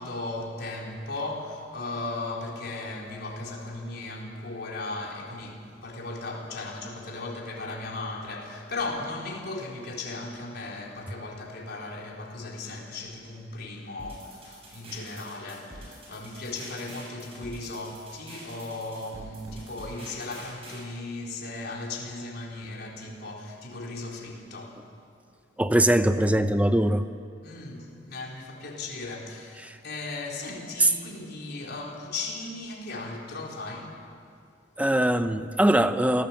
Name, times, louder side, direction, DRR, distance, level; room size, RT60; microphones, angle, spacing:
voice 1, 0.0-25.0 27.4-34.0, left 2 dB, 60° left, 4.0 m, -37 dB
sound 1, 14.0-20.8, right 1 dB, 30° right, 7.8 m, -46 dB
voice 2, 25.6-27.0 29.6-29.8 34.8-36.3, right 1 dB, 10° right, 0.9 m, -22 dB
28.5 x 18.0 x 7.3 m
head